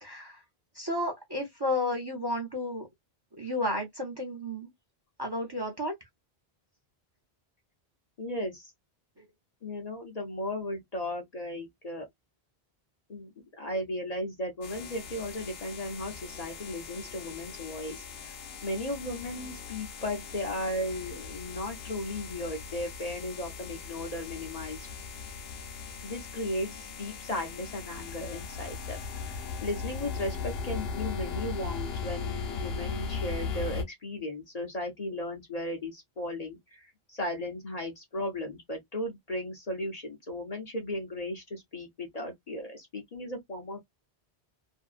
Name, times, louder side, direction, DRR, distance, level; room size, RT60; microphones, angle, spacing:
voice 1, 0.0-0.4 0.7-2.9 3.4-4.7 5.2-5.9 9.2-9.3, left 1 dB, 25° right, 0.6 m, -32 dB
voice 2, 8.2-8.7 9.6-12.1 13.1-13.3 13.6-18.1 18.6-24.9 26.0-43.8, left 1 dB, 45° left, 0.7 m, -36 dB
sound 1, 14.6-33.8, left 5 dB, 70° left, 0.9 m, -38 dB
2.6 x 2.0 x 2.3 m
omnidirectional pair, 1.1 m